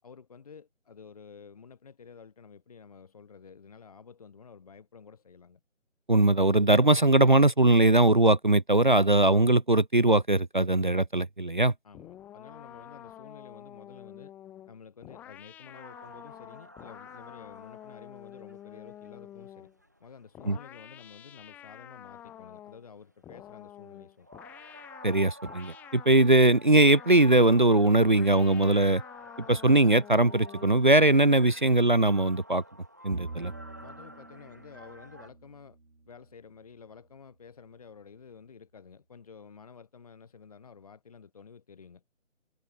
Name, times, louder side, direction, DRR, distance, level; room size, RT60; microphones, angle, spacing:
voice 1, 0.0-5.6 11.8-14.3 14.7-19.7 20.0-24.4 33.8-35.8 36.1-42.0, left 6 dB, 30° left, 6.6 m, -51 dB
voice 2, 6.1-11.7 20.5-20.6 25.0-29.0 29.5-32.6 33.0-33.5, right 2 dB, 40° right, 0.7 m, -21 dB
sound 1, 11.9-19.8 20.3-22.9 23.2-26.2 26.8-27.4 28.0-30.9, left 11 dB, 5° left, 3.0 m, -48 dB
sound 2, 15.7-22.4 22.9-23.3 23.6-35.3, equal, 15° right, 1.0 m, -51 dB
Bowed string instrument, 33.1-36.6, right 3 dB, 60° right, 4.7 m, -44 dB
figure-of-eight pair, 165°, 39 cm